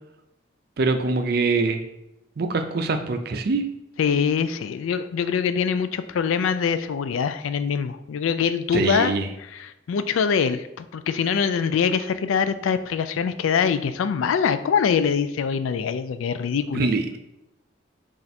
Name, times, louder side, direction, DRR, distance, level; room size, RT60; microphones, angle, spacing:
voice 1, 0.8-1.8 2.4-3.7 8.7-9.3 16.7-17.2, right 3 dB, 50° right, 7 dB, 0.4 m, -23 dB
voice 2, 4.0-9.1 9.4-16.9, left 6 dB, 90° left, 11 dB, 0.3 m, -24 dB
4.4 x 2.5 x 4.1 m, 0.91 s
head